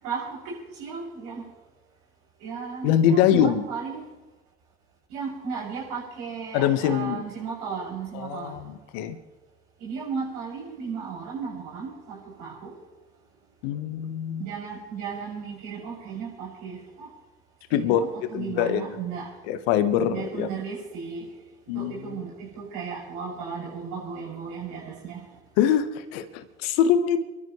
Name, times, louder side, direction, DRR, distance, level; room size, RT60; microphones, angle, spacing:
voice 1, 0.0-1.4 2.4-4.0 5.1-8.5 9.8-12.7 14.4-17.1 17.7-19.3 20.1-21.2 21.7-25.2, right 5 dB, 75° right, -4 dB, 7.1 m, -35 dB
voice 2, 2.8-3.6 6.5-7.2 8.1-9.2 13.6-14.4 17.7-18.0 18.3-18.8 19.5-20.5 21.7-22.2 25.6-27.2, left 9 dB, 75° left, 10 dB, 1.4 m, -23 dB
29.0 x 12.5 x 3.2 m, 1.1 s
hypercardioid pair, 55°, 31 cm